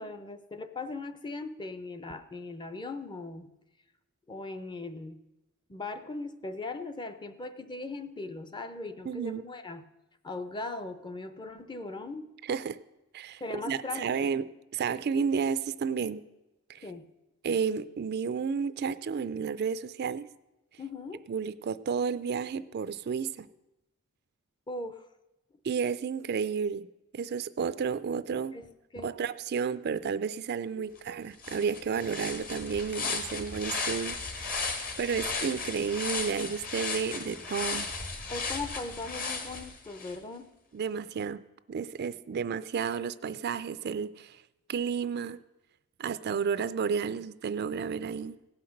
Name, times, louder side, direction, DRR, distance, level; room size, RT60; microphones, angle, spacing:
voice 1, 0.0-3.5 4.3-5.2 5.7-9.8 10.2-12.3 13.4-14.3 16.8-17.1 20.8-21.2 24.7-25.0 28.5-29.2 30.7-31.2 38.3-40.5 47.1-47.2, left 3 dB, 20° left, 11 dB, 0.6 m, -39 dB
voice 2, 9.1-9.4 12.5-12.8 13.1-13.4 13.7-14.4 14.7-16.2 16.7-16.8 17.4-20.3 21.3-23.5 25.6-26.9 27.1-28.5 29.0-34.6 35.0-37.9 40.7-41.4 41.7-44.4 44.7-45.4 46.0-48.4, right 6 dB, 50° right, 14 dB, 0.4 m, -31 dB
sound 1, 31.0-31.1 31.4-40.2, left 4 dB, 45° left, 1.3 m, -35 dB
17.0 x 5.8 x 6.4 m, 0.98 s
head